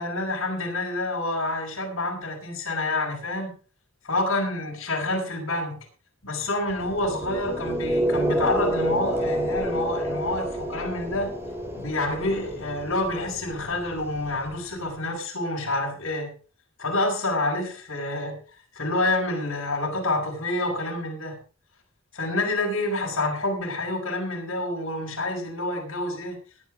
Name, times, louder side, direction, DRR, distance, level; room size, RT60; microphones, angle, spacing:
voice 1, 0.0-3.5 4.0-5.7 6.2-11.3 11.7-16.3 16.8-18.4 18.7-21.4 22.1-26.4, left 2 dB, 75° left, -1 dB, 6.1 m, -28 dB
sound 1, 6.7-14.8, equal, 10° right, 5.4 m, -29 dB
20.5 x 9.7 x 3.8 m, 0.38 s
head